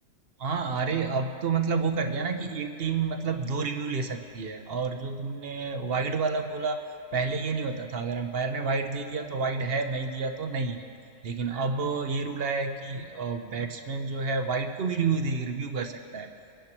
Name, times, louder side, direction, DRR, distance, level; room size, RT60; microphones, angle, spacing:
voice 1, 0.4-6.8 7.1-10.8 11.2-16.3, right 4 dB, 55° right, 6 dB, 0.9 m, -29 dB
24.0 x 10.0 x 3.0 m, 2.5 s
omnidirectional pair, 1.3 m